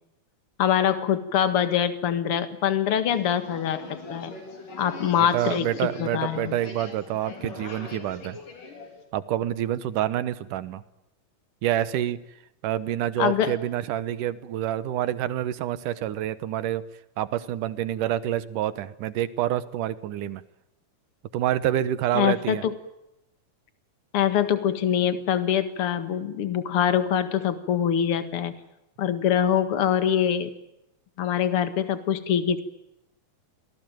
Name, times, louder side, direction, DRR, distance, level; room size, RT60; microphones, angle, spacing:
voice 1, 0.6-4.3 4.8-6.6 13.2-13.6 22.1-22.8 24.1-28.5 29.0-30.5 31.2-32.6, left 9 dB, 50° left, 11 dB, 2.3 m, -24 dB
sound 1, 3.1-9.0, left 4 dB, 80° left, 5.7 m, -42 dB
voice 2, 5.2-8.4 9.1-10.8 11.6-12.2 12.6-16.8 17.2-20.4 21.3-22.7, right 12 dB, 80° right, 15 dB, 2.6 m, -27 dB
27.5 x 19.5 x 9.2 m, 0.86 s
omnidirectional pair, 3.7 m